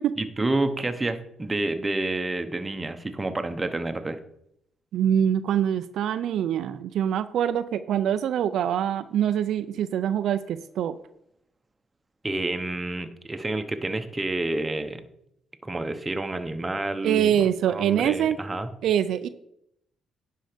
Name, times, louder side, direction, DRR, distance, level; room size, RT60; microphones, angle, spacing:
voice 1, 0.2-4.2 12.2-15.0 15.6-18.7, right 2 dB, 20° right, 8 dB, 0.9 m, -29 dB
voice 2, 4.9-11.0 17.0-18.4 18.8-19.3, right 9 dB, 75° right, 11 dB, 0.4 m, -24 dB
10.5 x 5.5 x 5.1 m, 0.76 s
cardioid pair, 90°, 0 cm